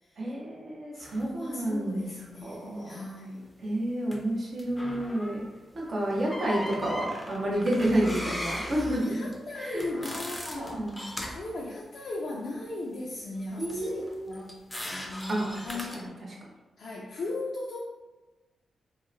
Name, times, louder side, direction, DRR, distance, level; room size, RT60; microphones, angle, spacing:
voice 1, 0.2-2.1 2.4-3.0 3.6-5.4 5.7-9.3 9.6-9.8 10.5-11.0 13.6-14.4 15.3-16.1, right 1 dB, 60° right, -4 dB, 0.7 m, -30 dB
voice 2, 0.9-3.5 8.2-8.3 9.0-10.9 11.3-16.2 16.8-17.8, left 2 dB, 70° left, -5 dB, 0.3 m, -38 dB
sound 1, 1.0-1.3 4.1-4.2 4.6-5.5 6.1-11.5 13.6-16.1, left 1 dB, 15° left, 0.4 m, -38 dB
2.8 x 2.0 x 2.5 m, 1.2 s
cardioid pair, 60°, 0 cm